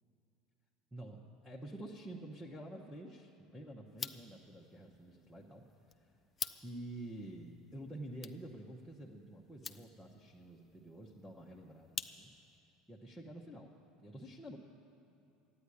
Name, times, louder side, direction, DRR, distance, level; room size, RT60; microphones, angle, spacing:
voice 1, 0.9-5.6 6.0-6.1 6.5-12.3 12.9-13.7 14.0-14.6, right 1 dB, ahead, -5 dB, 0.8 m, -49 dB
sound 1, 3.9-12.6, left 6 dB, 20° left, 0.4 m, -49 dB
13.5 x 9.4 x 9.8 m, 2.9 s
cardioid pair, 175°, 0 cm